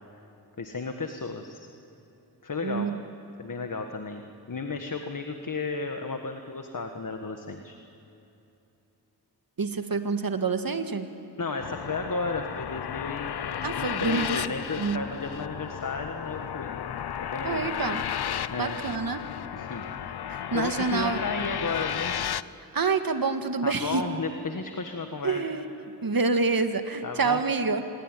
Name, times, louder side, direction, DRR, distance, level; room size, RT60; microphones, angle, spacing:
voice 1, 0.6-1.7 2.4-2.9 3.4-7.8 11.4-13.3 13.7-16.8 17.3-17.7 18.5-18.8 19.5-19.8 20.2-22.2 23.6-25.4 27.0-27.4, left 3 dB, 50° left, 5 dB, 1.6 m, -33 dB
voice 2, 2.6-2.9 9.6-11.1 13.6-14.4 14.8-15.0 17.4-18.0 18.6-19.2 20.3-21.2 22.7-24.0 25.2-25.7 26.0-27.8, right 4 dB, 55° right, 7 dB, 1.9 m, -27 dB
sound 1, 11.6-22.4, left 9 dB, 65° left, 0.7 m, -33 dB
27.5 x 21.0 x 9.2 m, 2.9 s
wide cardioid pair, 65°, 41 cm